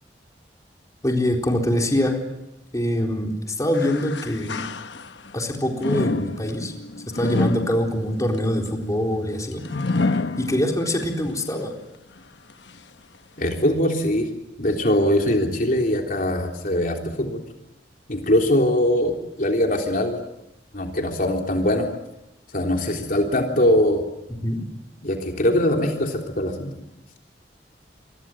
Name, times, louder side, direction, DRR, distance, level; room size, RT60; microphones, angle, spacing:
voice 1, 1.0-2.2 2.7-3.3 3.6-4.6 5.3-6.7 7.1-9.6 10.4-11.7 24.4-24.6, left 1 dB, 20° left, 1 dB, 4.1 m, -24 dB
sound 1, 3.7-5.3 5.8-11.1 11.5-11.6 12.5-12.6, left 3 dB, 90° left, 1.1 m, -28 dB
voice 2, 13.4-14.3 14.6-17.4 18.1-20.2 20.7-21.9 22.5-24.0 25.0-26.7, left 1 dB, 50° left, 2 dB, 3.5 m, -22 dB
28.0 x 23.5 x 7.7 m, 0.89 s
head